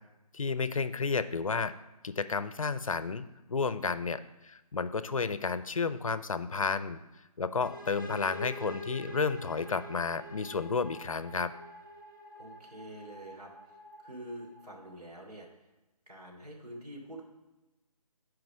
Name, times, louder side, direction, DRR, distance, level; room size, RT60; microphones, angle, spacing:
voice 1, 0.3-1.7 2.0-7.0 7.4-11.5, left 4 dB, 60° left, 14 dB, 0.5 m, -32 dB
sound 1, 7.6-15.3, equal, 30° left, 0.8 m, -46 dB
voice 2, 12.4-15.5 16.1-17.2, right 1 dB, 80° right, -1 dB, 3.1 m, -46 dB
9.5 x 5.0 x 6.1 m, 1.1 s
hypercardioid pair, 180°, 20 cm